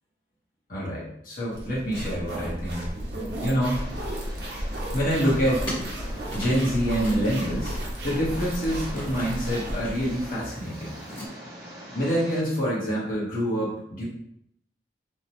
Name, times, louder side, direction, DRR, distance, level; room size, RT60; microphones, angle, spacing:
voice 1, 0.7-2.9 3.4-3.8 4.9-5.7 6.0-11.0 11.9-14.0, equal, 50° left, -7 dB, 1.0 m, -26 dB
sound 1, 1.5-10.3, equal, 70° right, 0.7 m, -33 dB
Engine, 3.7-12.4, equal, 35° right, 0.9 m, -43 dB
sound 2, 5.1-11.3, equal, 25° left, 1.1 m, -41 dB
2.8 x 2.1 x 2.9 m, 0.74 s
head